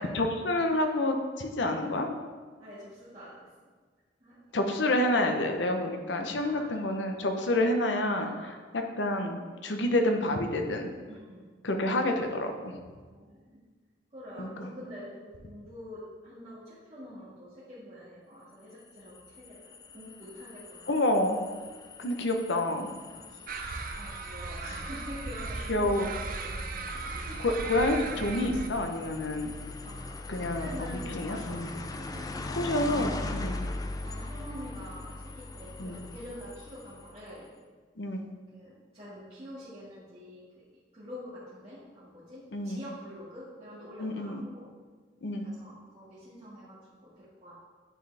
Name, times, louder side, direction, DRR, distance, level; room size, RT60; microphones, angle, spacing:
voice 1, 0.1-2.1 4.5-8.3 8.7-10.9 11.6-12.7 14.4-14.7 20.9-21.4 22.0-22.9 25.7-26.0 27.4-29.5 30.3-31.7 32.6-33.6 35.8-36.0 38.0-38.2 42.5-42.8 44.0-44.4 45.2-45.5, left 1 dB, 75° left, 4 dB, 0.8 m, -28 dB
voice 2, 2.6-3.5 4.2-4.4 6.4-7.7 8.2-8.6 11.1-11.5 13.1-13.6 14.1-21.1 23.1-26.9 27.1-27.4 29.8-31.6 32.0-32.8 33.1-33.4 33.9-37.5 38.5-40.4 40.9-44.7 45.4-47.5, equal, 35° right, -12 dB, 1.8 m, -46 dB
sound 1, 18.8-37.3, left 2 dB, 20° left, 0.3 m, -41 dB
sound 2, 23.5-28.7, right 3 dB, 50° right, 0.6 m, -37 dB
9.8 x 4.7 x 3.4 m, 1.5 s
head